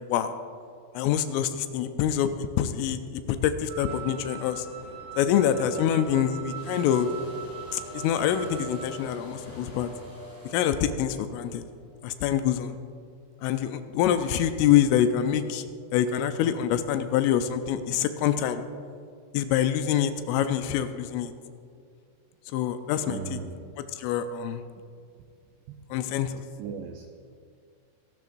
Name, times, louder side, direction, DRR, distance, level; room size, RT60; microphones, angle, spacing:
voice 1, 1.0-4.7 5.2-7.1 7.7-9.9 10.5-11.6 12.0-12.8 13.4-15.6 15.9-18.6 19.3-21.3 22.5-23.4 23.8-24.6 25.9-26.3, left 10 dB, 80° left, 9 dB, 3.1 m, -25 dB
Wind instrument woodwind instrument, 3.7-9.0, right 9 dB, 35° right, 3.0 m, -42 dB
sound 1, 3.9-9.9, left 1 dB, 60° left, 1.2 m, -48 dB
voice 2, 5.5-5.8 7.5-7.6 23.1-23.5 25.7-25.8 26.6-27.1, right 8 dB, 85° right, 5 dB, 2.5 m, -37 dB
sound 2, 6.5-12.0, right 2 dB, 5° left, 2.8 m, -46 dB
24.0 x 12.5 x 2.6 m, 2.2 s
omnidirectional pair, 5.8 m